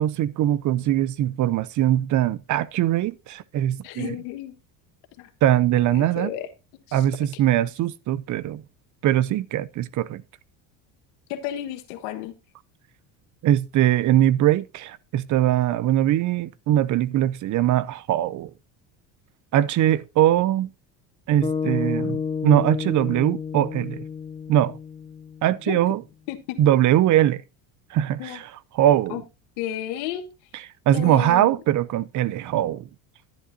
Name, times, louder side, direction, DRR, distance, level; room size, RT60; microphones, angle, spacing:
voice 1, 0.0-4.1 5.4-6.3 6.9-8.6 9.0-10.2 13.4-18.5 19.5-20.7 21.3-24.0 24.5-24.8 25.4-26.0 26.6-27.4 27.9-28.5 28.7-29.2 30.9-32.9, right 12 dB, 45° right, 0.6 m, -21 dB
voice 2, 3.8-4.5 5.2-5.3 5.9-6.5 6.9-7.0 11.3-12.3 25.7-25.8 26.3-26.6 28.2-28.4 29.1-29.2 29.6-30.3 30.9-31.5, left 12 dB, 85° left, 1.5 m, -32 dB
sound 1, 21.4-25.8, left 6 dB, 15° left, 0.4 m, -30 dB
10.5 x 10.0 x 2.7 m
supercardioid pair, 110°, 42 cm